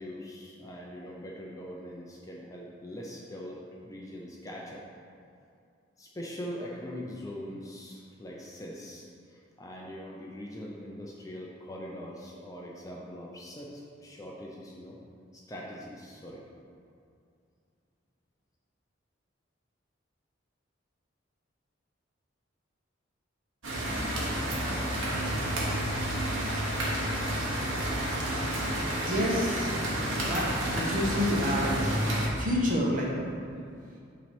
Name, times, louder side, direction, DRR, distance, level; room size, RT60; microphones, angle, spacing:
voice 1, 0.0-4.8 6.0-15.0 15.3-16.4, equal, 15° left, -3 dB, 0.5 m, -42 dB
sound 1, 23.6-32.3, right 1 dB, 90° right, 1.3 m, -30 dB
voice 2, 28.5-33.2 33.8-34.0, left 1 dB, 40° right, -4 dB, 1.2 m, -30 dB
8.8 x 3.2 x 4.4 m, 2.4 s
head